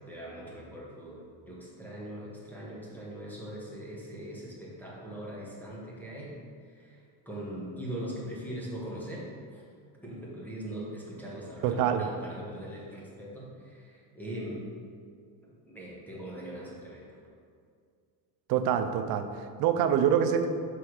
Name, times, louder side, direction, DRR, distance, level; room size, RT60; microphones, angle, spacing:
voice 1, 0.1-6.4 6.7-9.6 10.0-14.6 15.6-17.1, right 1 dB, 5° left, -6 dB, 1.2 m, -41 dB
voice 2, 11.6-12.1 18.5-20.5, right 8 dB, 50° right, 8 dB, 0.5 m, -26 dB
6.2 x 3.4 x 4.7 m, 2.2 s
cardioid pair, 135°, 48 cm